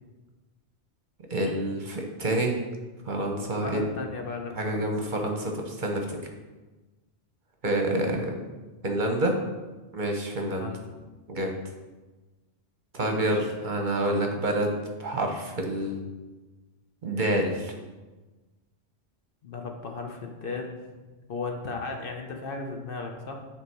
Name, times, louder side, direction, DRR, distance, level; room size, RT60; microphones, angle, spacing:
voice 1, 1.3-2.6 3.1-3.9 4.6-6.0 7.6-8.4 8.8-9.4 9.9-10.7 11.3-11.5 12.9-14.7 15.0-16.0 17.0-17.7, right 1 dB, 45° right, 2 dB, 0.9 m, -27 dB
voice 2, 3.6-4.8 10.4-10.8 13.2-13.5 19.4-20.8 21.3-23.4, left 4 dB, 55° left, 3 dB, 0.9 m, -35 dB
9.3 x 3.5 x 4.6 m, 1.2 s
omnidirectional pair, 1.2 m